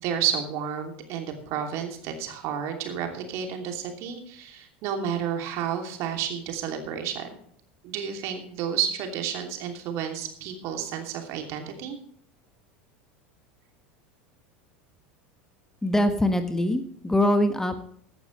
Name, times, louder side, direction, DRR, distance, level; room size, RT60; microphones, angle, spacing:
voice 1, 0.0-7.3 7.8-12.0, right 8 dB, 55° right, 4 dB, 2.9 m, -31 dB
voice 2, 15.8-17.8, left 1 dB, 10° left, 8 dB, 1.4 m, -23 dB
15.5 x 11.5 x 3.3 m, 0.63 s
hypercardioid pair, 80°, 6 cm